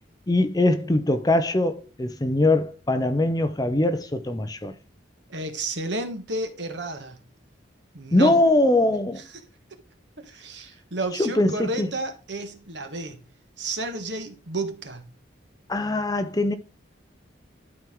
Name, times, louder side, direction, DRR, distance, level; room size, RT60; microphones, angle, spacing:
voice 1, 0.3-4.7 8.1-9.2 11.2-11.9 15.7-16.6, left 2 dB, 20° left, 0.6 m, -22 dB
voice 2, 5.3-7.2 7.9-8.4 10.2-13.2 13.6-15.0, right 2 dB, 70° right, 1.5 m, -31 dB
12.0 x 4.6 x 3.6 m
head